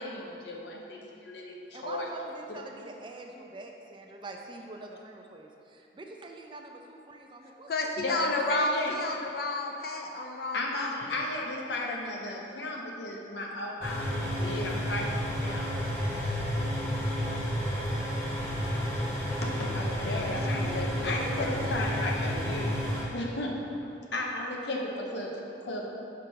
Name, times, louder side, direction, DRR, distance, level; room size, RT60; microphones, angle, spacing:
voice 1, 0.0-2.1 8.0-8.9 10.5-15.7 16.2-16.3 19.4-22.7 23.1-23.6 24.1-25.8, left 1 dB, 75° left, -1 dB, 0.9 m, -35 dB
voice 2, 1.4-8.4, right 2 dB, 25° right, 2 dB, 0.4 m, -45 dB
voice 3, 7.7-11.0 19.8-21.8, left 2 dB, 55° left, 3 dB, 0.5 m, -32 dB
sound 1, 13.8-23.0, equal, 15° left, 1.0 m, -31 dB
5.8 x 5.0 x 4.6 m, 2.9 s
head